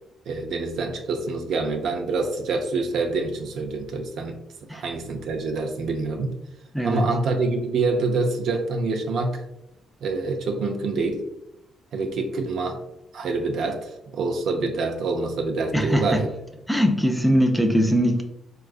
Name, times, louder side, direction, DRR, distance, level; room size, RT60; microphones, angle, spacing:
voice 1, 0.3-4.4 4.7-6.3 6.8-9.4 10.0-11.2 11.9-12.8 13.1-16.3, right 3 dB, 70° right, 3 dB, 0.5 m, -26 dB
voice 2, 15.7-16.0 16.7-18.2, equal, ahead, 3 dB, 0.4 m, -20 dB
3.7 x 2.4 x 2.4 m, 0.86 s
cardioid pair, 90°, 0 cm